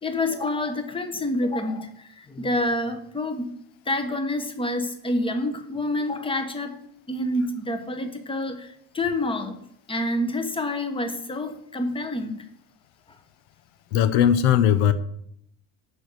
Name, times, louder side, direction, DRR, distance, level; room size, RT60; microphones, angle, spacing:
voice 1, 0.0-3.5 3.8-6.8 7.1-9.6 9.9-12.4, left 1 dB, 15° left, 1.2 m, -28 dB
voice 2, 13.9-14.9, left 9 dB, 70° left, 0.8 m, -18 dB
7.6 x 6.2 x 6.6 m
supercardioid pair, 110°, 41 cm